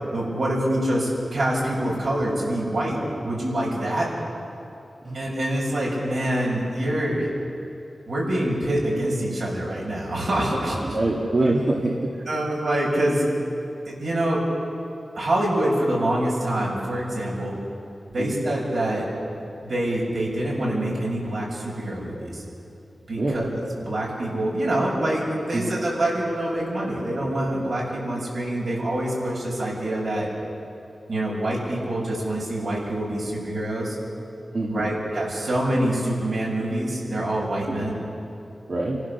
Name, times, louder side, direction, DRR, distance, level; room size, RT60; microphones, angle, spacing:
voice 1, 0.1-3.0 3.2-4.1 5.1-7.3 8.1-11.0 12.2-13.3 13.8-14.4 15.1-17.6 18.1-19.0 19.6-22.4 23.1-23.5 23.8-30.3 31.1-34.0 34.7-37.9, right 1 dB, 65° right, -4 dB, 7.0 m, -25 dB
voice 2, 10.9-11.9 18.2-18.4 23.2-23.5 25.5-25.8 34.5-34.9 37.7-37.8 38.7-39.0, right 2 dB, 50° right, -2 dB, 2.1 m, -24 dB
28.0 x 15.0 x 6.9 m, 2.8 s
wide cardioid pair, 105°, 0 cm